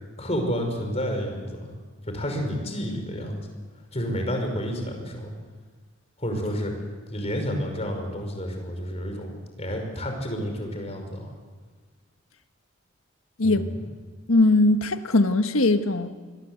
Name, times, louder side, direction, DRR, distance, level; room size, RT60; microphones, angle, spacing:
voice 1, 0.2-1.7 2.0-3.5 3.9-5.3 6.2-11.3 13.4-13.9, equal, 30° left, 3 dB, 5.5 m, -30 dB
voice 2, 14.3-16.1, left 2 dB, 90° left, 8 dB, 1.5 m, -20 dB
26.0 x 21.5 x 8.1 m, 1.4 s
head